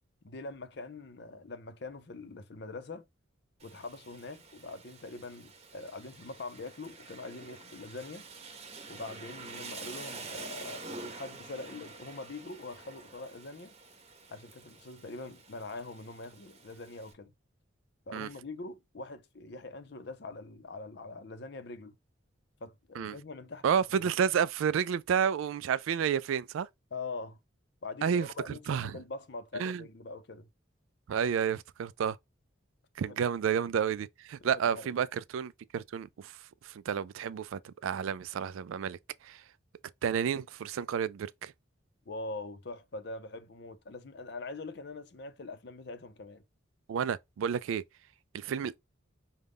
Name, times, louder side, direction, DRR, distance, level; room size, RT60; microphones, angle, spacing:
voice 1, 0.2-3.1 3.6-8.2 8.9-13.7 14.3-17.3 18.1-21.9 22.6-24.1 26.9-27.4 27.8-30.5 33.0-33.2 34.4-35.1 42.1-46.4, left 3 dB, 55° left, 0.6 m, -43 dB
Rain, 3.6-17.1, right 3 dB, 30° right, 0.9 m, -48 dB
voice 2, 23.6-26.7 28.0-28.3 28.7-29.0 29.6-29.8 31.1-32.2 33.0-36.3 36.6-39.0 39.2-39.4 40.0-41.5 46.9-47.8 48.3-48.8, right 7 dB, 75° right, 0.3 m, -30 dB
5.0 x 2.2 x 3.5 m
head